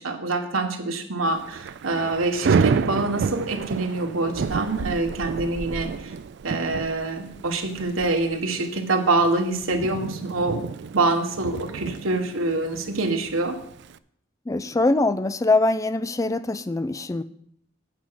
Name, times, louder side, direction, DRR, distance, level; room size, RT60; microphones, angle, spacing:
voice 1, 0.0-6.1 6.4-10.6 10.9-13.6, right 2 dB, 85° right, 4 dB, 1.3 m, -25 dB
Thunder / Rain, 1.3-14.0, right 5 dB, 55° right, 0.3 m, -30 dB
voice 2, 14.5-17.2, left 2 dB, 15° left, 13 dB, 0.3 m, -23 dB
8.7 x 6.8 x 5.8 m, 0.69 s
head